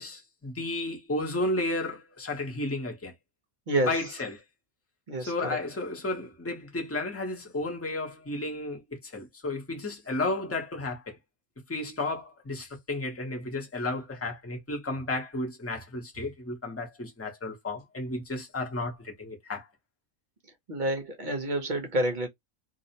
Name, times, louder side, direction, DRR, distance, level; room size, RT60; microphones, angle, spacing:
voice 1, 0.0-3.1 3.9-4.4 5.2-11.2 11.7-19.7, left 2 dB, 15° left, 0.6 m, -33 dB
voice 2, 5.1-5.6 20.7-22.3, right 1 dB, 45° right, 0.7 m, -28 dB
2.6 x 2.0 x 2.7 m
omnidirectional pair, 1.4 m